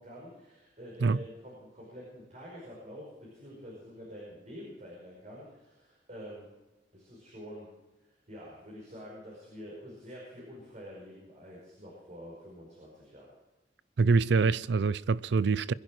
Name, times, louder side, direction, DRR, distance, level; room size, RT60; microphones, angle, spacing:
voice 1, 0.0-6.5 6.9-7.7 8.1-13.3, equal, 45° right, 5.4 m, -47 dB
voice 2, 14.0-15.7, right 4 dB, 70° right, 0.5 m, -25 dB
23.0 x 11.0 x 4.8 m
head